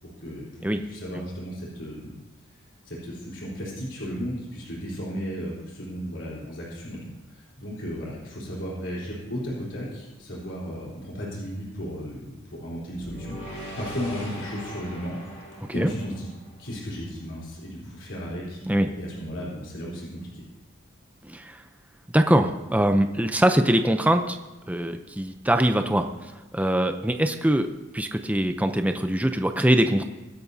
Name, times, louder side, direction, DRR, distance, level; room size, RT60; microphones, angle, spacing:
voice 1, 0.0-2.1 2.9-7.0 7.3-15.4 15.7-16.3 16.6-18.6 18.9-20.4, equal, 65° left, -5 dB, 3.9 m, -35 dB
sound 1, 13.0-17.3, equal, 35° left, 3.6 m, -40 dB
voice 2, 15.6-15.9 18.7-18.9 21.2-21.6 22.1-24.4 24.7-27.7 27.9-30.0, right 1 dB, 5° right, 6 dB, 0.6 m, -23 dB
23.0 x 11.0 x 2.8 m, 1.1 s
head